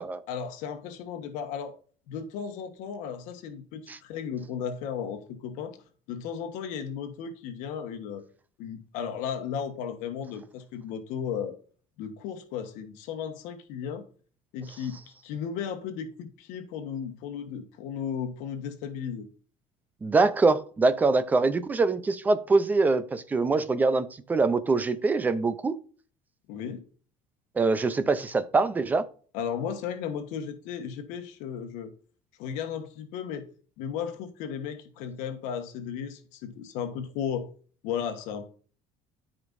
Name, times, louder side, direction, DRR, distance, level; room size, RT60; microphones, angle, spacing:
voice 1, 0.3-1.8 2.1-5.8 6.1-8.3 8.6-11.6 12.0-14.0 14.5-19.3 26.5-26.8 29.3-31.9 32.4-33.5 33.8-37.5 37.8-38.5, left 7 dB, 70° left, 1.3 m, -35 dB
voice 2, 20.0-25.7 27.6-29.0, right 3 dB, 15° right, 0.5 m, -24 dB
13.0 x 5.1 x 2.6 m
cardioid pair, 180°, 13 cm